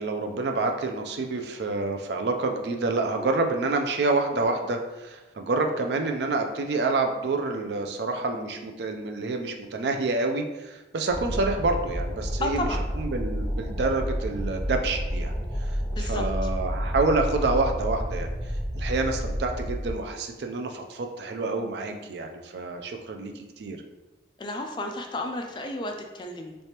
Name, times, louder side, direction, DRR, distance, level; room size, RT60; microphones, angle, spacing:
voice 1, 0.0-12.7 13.0-15.3 15.6-18.3 18.7-23.8, right 3 dB, 70° right, 4 dB, 0.4 m, -28 dB
sound 1, 11.1-19.9, equal, 40° right, 1.1 m, -30 dB
voice 2, 12.4-12.8 15.9-16.2 24.4-26.6, left 1 dB, 25° left, 4 dB, 0.3 m, -32 dB
3.3 x 3.2 x 2.9 m, 1.1 s
head